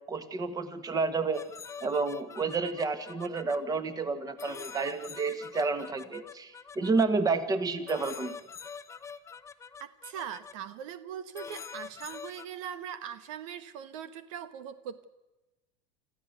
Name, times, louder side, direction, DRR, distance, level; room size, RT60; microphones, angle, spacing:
voice 1, 0.1-1.4 1.8-8.4, right 4 dB, 20° right, 10 dB, 1.9 m, -30 dB
sound 1, 1.3-3.6 4.4-7.1 7.9-10.5 11.3-12.5, left 6 dB, 15° left, 1.0 m, -44 dB
voice 2, 9.8-15.0, right 9 dB, 80° right, 13 dB, 1.3 m, -41 dB
26.5 x 14.5 x 8.3 m, 1.0 s
supercardioid pair, 125°, 16 cm